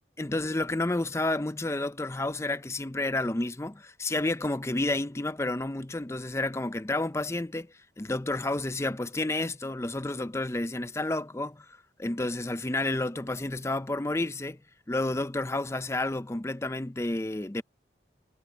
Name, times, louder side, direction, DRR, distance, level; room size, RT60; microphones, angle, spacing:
voice 1, 0.2-11.7 12.0-14.6 14.9-17.6, left 2 dB, 15° left, 0.6 m, -30 dB
head